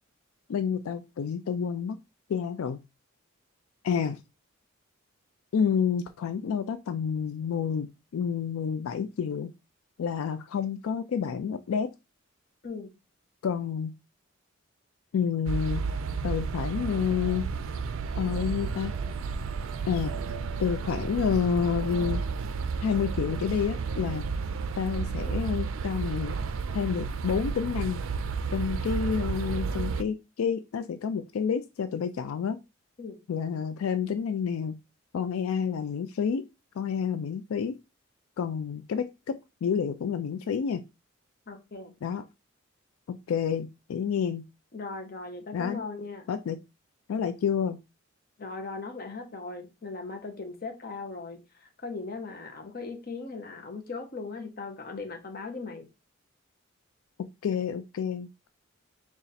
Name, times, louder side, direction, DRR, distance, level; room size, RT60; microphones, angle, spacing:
voice 1, 0.5-2.0 2.3-2.8 3.8-4.2 5.5-9.5 10.0-11.9 13.4-13.9 15.1-15.8 16.2-17.5 18.1-18.9 19.9-20.1 20.6-22.2 22.8-24.3 24.8-26.4 26.7-28.0 28.5-32.6 33.3-34.8 35.1-36.4 36.7-37.8 38.4-40.8 42.0-42.2 43.1-44.4 45.5-45.8 46.3-46.6 47.1-47.8 57.4-58.5, left 7 dB, 85° left, 0.3 m, -29 dB
sound 1, 15.5-30.0, right 5 dB, 70° right, 0.4 m, -32 dB
voice 2, 41.5-41.9 44.7-46.3 48.4-55.9, left 3 dB, 45° left, 0.8 m, -38 dB
4.0 x 2.4 x 4.0 m
head